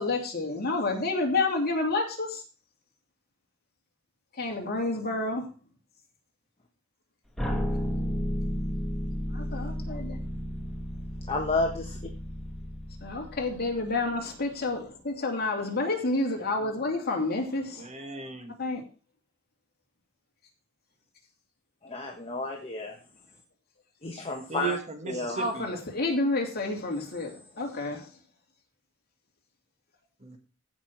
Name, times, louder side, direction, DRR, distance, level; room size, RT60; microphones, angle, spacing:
voice 1, 0.0-2.4 4.4-5.5 9.3-10.2 13.0-17.9 18.6-18.8 25.3-28.1, left 2 dB, 45° left, 2.8 m, -29 dB
sound 1, 7.4-14.3, equal, ahead, 1.7 m, -33 dB
voice 2, 11.3-12.0 21.8-23.0 24.0-24.8 25.0-25.4, left 2 dB, 30° left, 1.4 m, -31 dB
voice 3, 17.8-18.5 24.5-25.7 30.2-30.4, right 5 dB, 35° right, 1.6 m, -36 dB
15.5 x 5.8 x 4.6 m
head